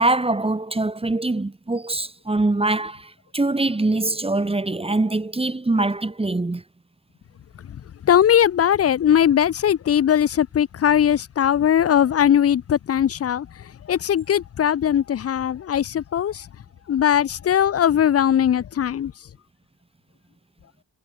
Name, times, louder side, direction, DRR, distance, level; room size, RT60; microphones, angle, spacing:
voice 1, 0.0-6.6, right 2 dB, 15° right, 0.9 m, -23 dB
voice 2, 7.7-16.5 16.9-19.1, left 9 dB, 35° left, 0.4 m, -20 dB
wide cardioid pair, 105°, 43 cm